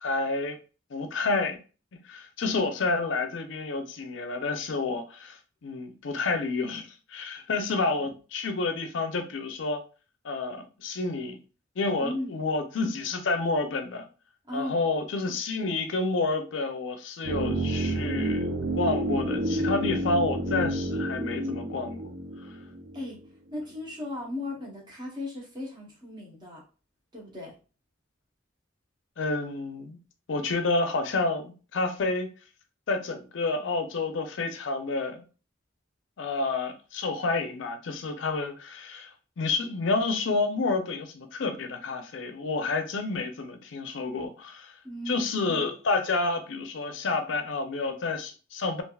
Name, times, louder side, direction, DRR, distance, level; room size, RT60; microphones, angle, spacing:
voice 1, 0.0-0.6 0.9-1.6 2.0-9.8 10.2-11.4 11.8-14.0 14.5-22.0 29.2-30.0 30.3-32.3 32.9-35.2 36.2-44.8 45.1-48.8, left 3 dB, 70° left, 0.5 m, -29 dB
voice 2, 12.0-12.4 14.5-14.9 22.9-23.2 23.5-26.6 27.1-27.5 44.8-45.5, left 1 dB, 25° right, 1.0 m, -36 dB
sound 1, 17.2-23.3 23.5-23.6, right 1 dB, 80° right, 0.6 m, -30 dB
3.3 x 2.4 x 2.3 m
head